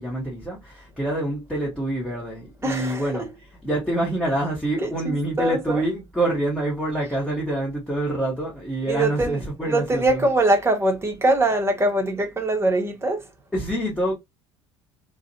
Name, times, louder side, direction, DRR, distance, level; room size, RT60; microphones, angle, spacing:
voice 1, 0.0-3.3 3.6-10.2 13.5-14.1, right 1 dB, 5° left, 1.1 m, -26 dB
voice 2, 2.6-3.2 4.8-5.8 8.9-13.3, right 2 dB, 20° right, 0.9 m, -23 dB
2.5 x 2.1 x 2.7 m
figure-of-eight pair, 65°, 14 cm